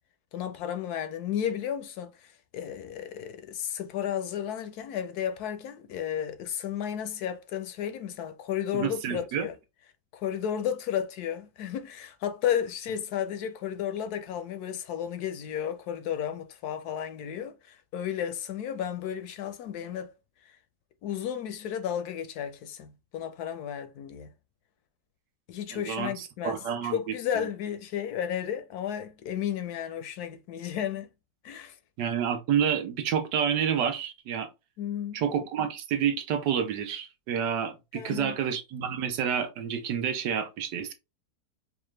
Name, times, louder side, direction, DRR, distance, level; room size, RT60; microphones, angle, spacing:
voice 1, 0.3-9.5 10.1-20.1 21.0-24.3 25.5-31.1 31.4-31.8 34.8-35.2 37.9-38.4, left 9 dB, 75° left, 1.0 m, -33 dB
voice 2, 8.7-9.5 25.7-27.5 32.0-34.5 35.1-40.9, right 8 dB, 85° right, 1.4 m, -29 dB
4.7 x 2.4 x 3.1 m
omnidirectional pair, 1.8 m